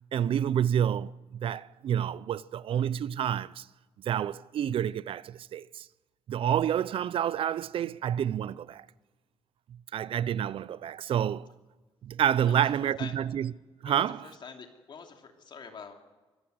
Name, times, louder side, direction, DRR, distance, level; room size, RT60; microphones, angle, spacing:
voice 1, 0.1-3.7 4.0-5.9 6.3-8.9 9.9-11.5 12.0-13.5 13.8-14.3, right 9 dB, 65° right, 0.6 m, -29 dB
voice 2, 14.4-15.9, left 6 dB, 50° left, 2.8 m, -45 dB
24.5 x 14.5 x 8.0 m
cardioid pair, 110°, 10 cm